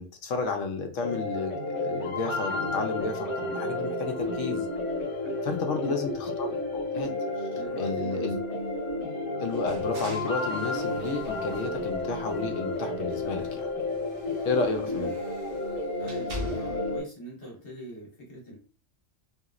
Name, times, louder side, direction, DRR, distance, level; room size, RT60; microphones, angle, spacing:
voice 1, 0.0-4.7 5.4-7.1 7.4-7.5 7.7-8.4 9.4-13.7 14.4-15.1, left 4 dB, 80° left, 5 dB, 1.0 m, -32 dB
sound 1, 1.0-17.0, left 2 dB, 15° left, 1.1 m, -32 dB
voice 2, 7.5-8.3 14.8-15.1 16.0-18.6, right 2 dB, 50° left, -3 dB, 1.6 m, -42 dB
sound 2, 9.5-12.7 13.0-17.0, left 1 dB, 50° right, 1.0 m, -44 dB
3.6 x 3.0 x 2.5 m, 0.39 s
omnidirectional pair, 1.3 m